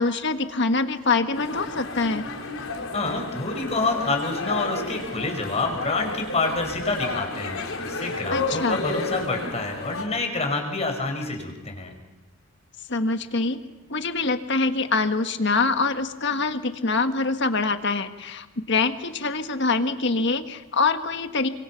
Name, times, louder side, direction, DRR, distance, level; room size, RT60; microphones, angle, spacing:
voice 1, 0.0-2.2 8.3-8.8 12.9-13.6 13.9-21.5, left 3 dB, 60° left, 8 dB, 1.5 m, -24 dB
sound 1, 1.3-10.0, left 3 dB, 90° left, 3.5 m, -32 dB
voice 2, 2.9-11.9, left 3 dB, 30° left, 4 dB, 5.2 m, -27 dB
29.5 x 25.5 x 5.9 m, 1.1 s
head